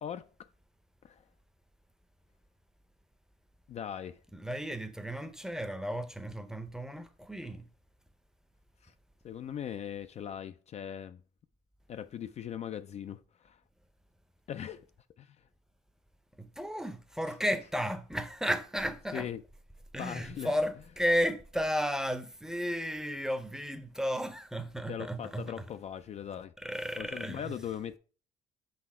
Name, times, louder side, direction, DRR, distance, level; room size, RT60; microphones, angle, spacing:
voice 1, 0.0-0.5 1.0-1.2 3.7-4.2 8.8-8.9 9.2-11.2 11.9-13.6 14.5-14.9 15.2-15.4 17.3-17.4 19.1-19.4 20.0-20.6 24.9-26.5 27.0-28.0, left 9 dB, 40° left, 0.3 m, -40 dB
voice 2, 4.3-7.7 16.4-19.3 19.9-25.6 26.6-27.5, equal, 5° right, 0.6 m, -33 dB
5.4 x 4.2 x 4.2 m
cardioid pair, 110°, 17 cm